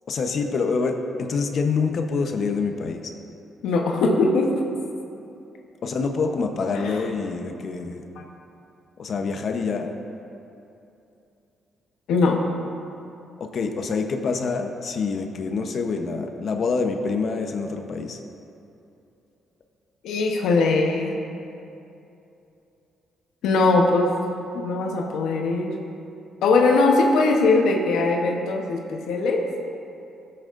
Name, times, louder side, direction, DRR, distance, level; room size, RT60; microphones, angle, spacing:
voice 1, 0.1-3.1 5.8-8.0 9.0-9.9 13.4-18.2, left 4 dB, 55° left, 5 dB, 0.8 m, -26 dB
voice 2, 3.6-4.5 6.7-7.0 12.1-12.5 20.0-21.1 23.4-24.2 24.5-25.8 26.4-29.5, left 3 dB, 85° left, 1 dB, 0.9 m, -20 dB
16.0 x 7.8 x 2.5 m, 2.8 s
cardioid pair, 90°, 0 cm